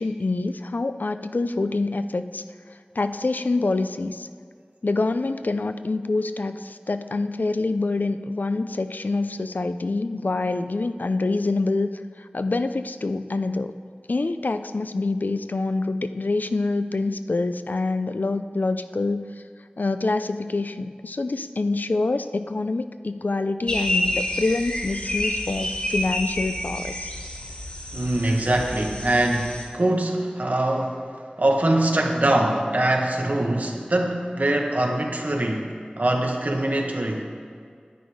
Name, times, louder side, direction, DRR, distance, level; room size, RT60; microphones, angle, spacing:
voice 1, 0.0-2.4 3.0-4.3 4.8-11.9 12.2-13.7 14.1-19.4 19.8-27.1, left 3 dB, 75° left, 10 dB, 0.4 m, -26 dB
sound 1, 23.7-29.6, left 1 dB, 40° left, 1.8 m, -29 dB
voice 2, 27.9-31.1 31.4-37.3, right 1 dB, 60° right, 1 dB, 1.2 m, -23 dB
10.0 x 9.4 x 4.7 m, 2.1 s
wide cardioid pair, 45°, 3 cm